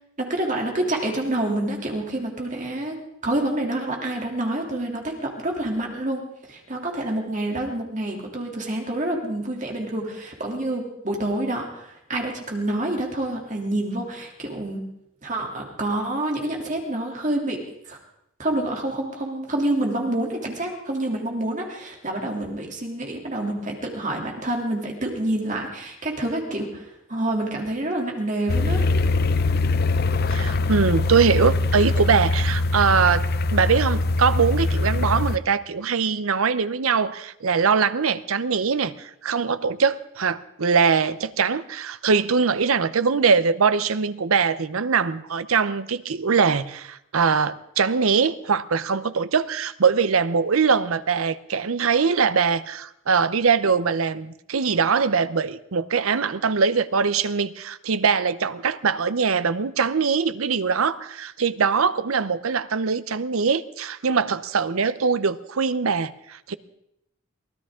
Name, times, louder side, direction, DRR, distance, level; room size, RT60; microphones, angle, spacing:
voice 1, 0.2-3.0 3.2-6.2 6.5-14.8 15.2-17.6 17.8-18.0 18.4-29.0, right 1 dB, 35° right, 1 dB, 2.9 m, -27 dB
sound 1, 28.5-35.4, left 3 dB, 45° left, 0.5 m, -22 dB
voice 2, 30.3-66.5, right 5 dB, 85° right, 15 dB, 0.7 m, -22 dB
23.5 x 16.5 x 3.7 m, 0.78 s
head